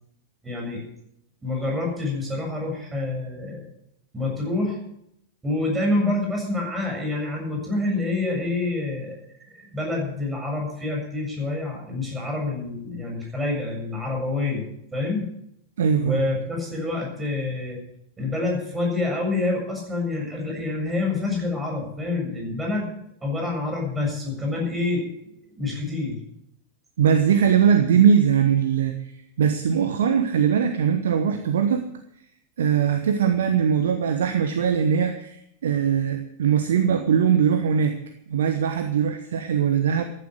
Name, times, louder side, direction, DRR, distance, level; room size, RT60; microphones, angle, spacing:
voice 1, 0.4-0.8 1.4-3.6 4.1-4.8 5.4-15.3 16.0-17.8 18.2-22.9 23.2-25.1 25.4-26.2, left 2 dB, 15° right, 1 dB, 7.2 m, -27 dB
voice 2, 15.8-16.2 27.0-31.8 32.6-38.0 38.3-40.0, right 7 dB, 60° right, 8 dB, 1.2 m, -21 dB
15.0 x 11.0 x 6.4 m, 0.75 s
figure-of-eight pair, 90°, 0 cm